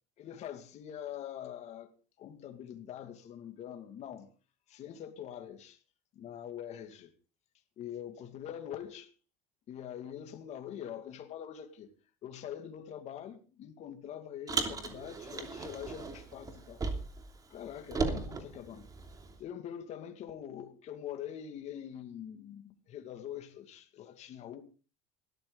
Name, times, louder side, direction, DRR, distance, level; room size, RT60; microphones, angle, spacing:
voice 1, 0.2-4.3 4.7-5.8 6.1-7.1 7.8-9.1 9.7-11.9 12.2-16.8 17.5-18.9 19.4-24.6, left 10 dB, 50° left, 2.4 m, -44 dB
Car, 14.5-17.3 17.5-19.4, right 4 dB, 25° right, 3.0 m, -36 dB
19.0 x 13.5 x 4.1 m
cardioid pair, 120°, 14 cm